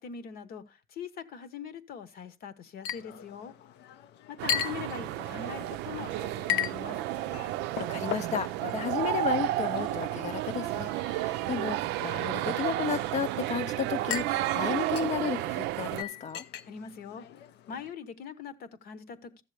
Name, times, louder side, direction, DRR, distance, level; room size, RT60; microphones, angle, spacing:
voice 1, 0.0-3.5 4.3-7.0 16.6-17.2 17.7-19.4, left 7 dB, 65° left, 1.0 m, -42 dB
Chink clink, 2.8-17.9, left 10 dB, 85° left, 0.6 m, -39 dB
sound 1, 4.4-16.0, right 16 dB, 90° right, 0.4 m, -32 dB
voice 2, 7.8-16.4, left 7 dB, 45° left, 0.4 m, -33 dB
13.0 x 7.4 x 3.2 m
cardioid pair, 110°, 17 cm